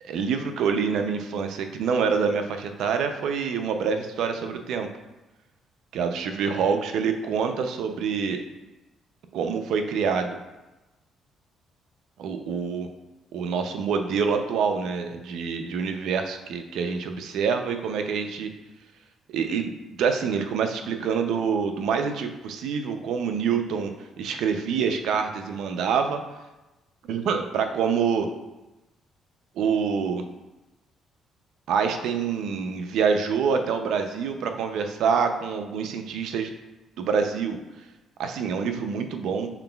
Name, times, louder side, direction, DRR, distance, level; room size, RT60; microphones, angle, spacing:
voice 1, 0.0-4.9 5.9-8.4 9.3-10.4 12.2-12.9 13.3-18.5 19.3-19.7 20.0-26.2 27.1-28.3 29.6-30.2 31.7-36.5 37.0-37.6 38.2-39.5, right 6 dB, 75° right, 6 dB, 0.4 m, -26 dB
5.8 x 3.8 x 2.3 m, 1.0 s
cardioid pair, 95°, 0 cm